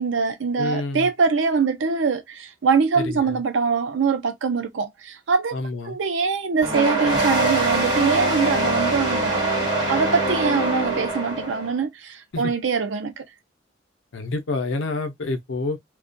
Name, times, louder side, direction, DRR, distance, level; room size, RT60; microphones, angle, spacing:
voice 1, 0.0-5.6 5.9-9.4 9.9-13.2, right 5 dB, 80° right, 0.5 m, -23 dB
voice 2, 0.6-1.1 3.0-3.4 5.5-6.0 12.3-12.5 14.1-15.8, left 2 dB, 85° left, 0.6 m, -28 dB
sound 1, 6.6-11.7, right 2 dB, 25° right, 1.2 m, -23 dB
2.3 x 2.2 x 2.4 m
head